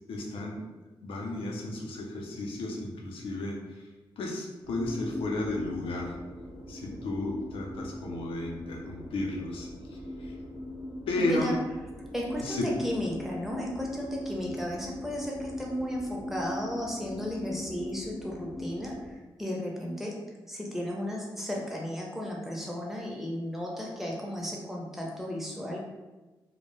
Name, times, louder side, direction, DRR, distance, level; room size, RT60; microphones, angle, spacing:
voice 1, 0.1-0.7 1.0-3.9 4.2-6.2 6.7-10.4 11.1-11.5 12.4-12.7, left 2 dB, 80° left, -1 dB, 0.5 m, -33 dB
sound 1, 4.6-19.1, left 1 dB, 70° right, 0.6 m, -40 dB
voice 2, 11.2-11.6 12.1-20.1 20.5-25.8, left 1 dB, 5° right, -2 dB, 0.7 m, -34 dB
2.1 x 2.1 x 3.0 m, 1.2 s
cardioid pair, 60°, 9 cm